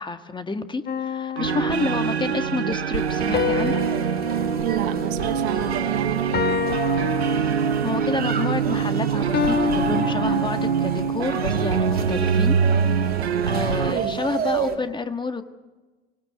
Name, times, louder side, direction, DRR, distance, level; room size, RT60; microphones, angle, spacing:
voice 1, 0.0-3.8 7.6-13.2 13.5-15.5, left 3 dB, 15° left, 9 dB, 1.7 m, -29 dB
sound 1, 0.9-2.3 3.3-5.8 6.3-7.9 9.3-11.0, left 7 dB, 30° left, 1.5 m, -29 dB
sound 2, 1.4-13.9, right 7 dB, 85° right, 1.1 m, -24 dB
sound 3, 2.9-14.8, right 6 dB, 30° right, 3.4 m, -34 dB
voice 2, 4.6-6.5 13.8-14.2, right 13 dB, 50° right, 10 dB, 1.7 m, -30 dB
25.5 x 18.5 x 8.1 m, 1.2 s
figure-of-eight pair, 80°, 31 cm